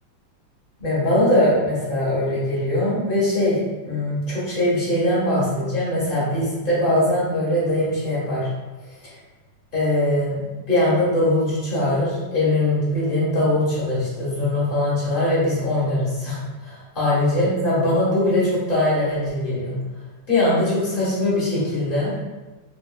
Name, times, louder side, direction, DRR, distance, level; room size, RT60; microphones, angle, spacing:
voice 1, 0.8-3.6 3.9-8.5 9.0-9.1 9.7-10.4 10.7-19.8 20.3-22.1, left 1 dB, 30° left, -9 dB, 1.3 m, -21 dB
3.9 x 2.9 x 2.3 m, 1.2 s
omnidirectional pair, 2.3 m